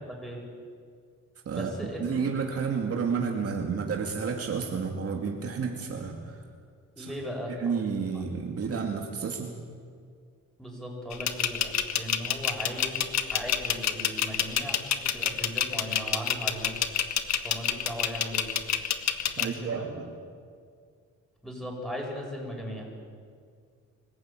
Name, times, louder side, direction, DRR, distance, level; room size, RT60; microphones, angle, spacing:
voice 1, 0.1-0.4 1.5-2.1 7.0-7.7 10.6-13.1 13.3-16.8 17.4-18.5 19.4-19.9 21.4-22.9, equal, ahead, -1 dB, 7.7 m, -37 dB
voice 2, 1.5-6.4 7.0-7.1 7.6-9.6 19.4-20.1, right 5 dB, 50° right, 1 dB, 2.4 m, -31 dB
sound 1, 11.1-19.4, left 9 dB, 65° left, 1.6 m, -27 dB
24.0 x 15.5 x 9.2 m, 2.1 s
cardioid pair, 90°, 30 cm